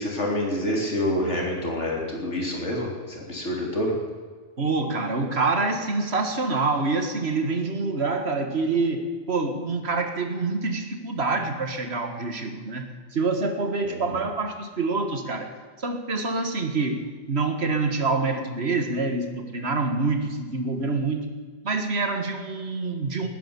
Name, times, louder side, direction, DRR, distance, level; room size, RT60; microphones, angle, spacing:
voice 1, 0.0-4.0 13.8-14.2, left 1 dB, 75° left, 0 dB, 3.6 m, -27 dB
voice 2, 4.6-12.9 13.1-15.5 15.8-21.2 21.6-23.3, right 3 dB, 60° right, 6 dB, 1.9 m, -26 dB
19.5 x 10.5 x 7.0 m, 1.5 s
omnidirectional pair, 1.2 m